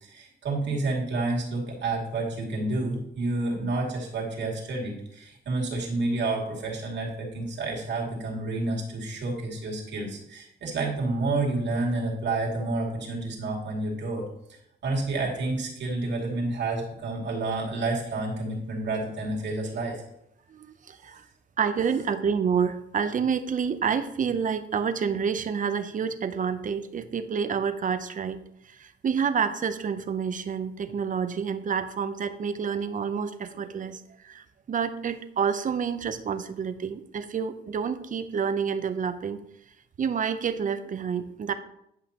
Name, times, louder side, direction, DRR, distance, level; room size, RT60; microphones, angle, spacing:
voice 1, 0.0-20.0, right 2 dB, 65° right, -3 dB, 2.5 m, -29 dB
voice 2, 20.5-21.3 21.6-28.4 28.6-39.4 40.0-41.5, right 6 dB, 40° right, 10 dB, 0.7 m, -28 dB
10.5 x 5.6 x 3.0 m, 0.77 s
cardioid pair, 90°, 20 cm